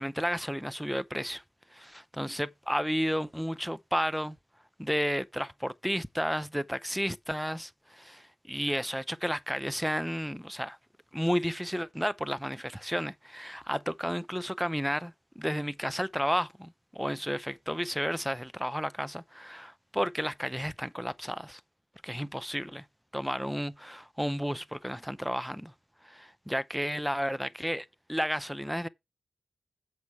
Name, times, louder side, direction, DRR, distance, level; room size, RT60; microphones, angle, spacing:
voice 1, 0.0-1.4 1.7-4.4 4.8-10.8 11.1-21.6 22.0-22.8 23.1-25.7 26.0-28.9, equal, ahead, 0.5 m, -32 dB
7.6 x 5.5 x 4.4 m
cardioid pair, 80°, 0 cm